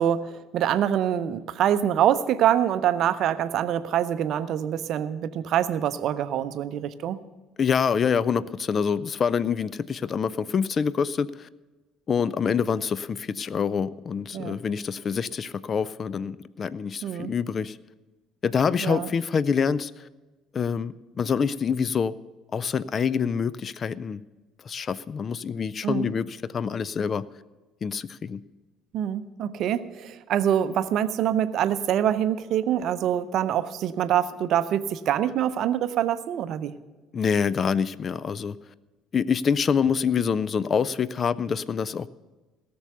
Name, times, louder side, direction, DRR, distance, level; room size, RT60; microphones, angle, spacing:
voice 1, 0.0-7.2 14.3-14.6 17.0-17.3 18.8-19.1 25.8-26.1 28.9-36.7, right 10 dB, 50° right, 13 dB, 0.6 m, -25 dB
voice 2, 7.6-11.5 12.1-17.8 18.4-20.1 20.5-22.1 22.5-24.2 24.6-27.2 27.8-28.4 37.1-38.6 39.1-42.1, left 6 dB, 35° left, 18 dB, 0.4 m, -26 dB
17.5 x 6.9 x 6.7 m, 1.2 s
figure-of-eight pair, 55°, 0 cm